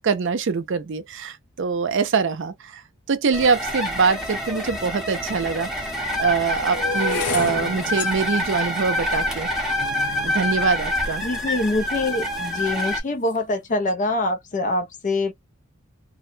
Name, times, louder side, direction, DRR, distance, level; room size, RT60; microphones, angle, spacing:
voice 1, 0.0-2.8 3.1-5.7 6.2-9.5 10.2-11.2, right 5 dB, 55° right, 0.5 m, -23 dB
sound 1, 3.3-13.0, left 1 dB, ahead, 0.7 m, -27 dB
sound 2, 4.8-4.9 5.7-11.8 12.5-12.9 13.1-13.5, left 4 dB, 85° left, 0.7 m, -33 dB
voice 2, 11.2-15.3, left 2 dB, 35° left, 0.4 m, -24 dB
2.5 x 2.1 x 2.6 m
head